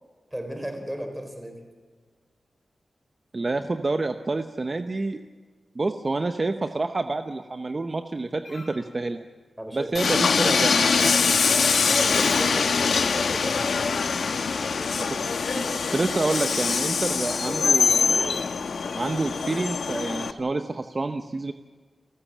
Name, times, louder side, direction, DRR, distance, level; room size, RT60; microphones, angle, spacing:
voice 1, 0.3-1.6 9.6-9.9 11.9-14.1 14.5-15.2, equal, 5° right, 5 dB, 4.1 m, -35 dB
voice 2, 3.3-5.2 5.7-9.2 9.7-11.1 15.0-15.2 15.5-18.4 19.0-21.5, right 3 dB, 35° right, 7 dB, 0.8 m, -28 dB
sound 1, 8.4-8.9 9.2-14.1 14.4-15.4 15.7-18.5, left 2 dB, 45° left, 4.1 m, -43 dB
Train, 9.9-20.3, left 5 dB, 80° left, 1.1 m, -23 dB
29.5 x 14.5 x 7.4 m, 1.5 s
wide cardioid pair, 140°, 0 cm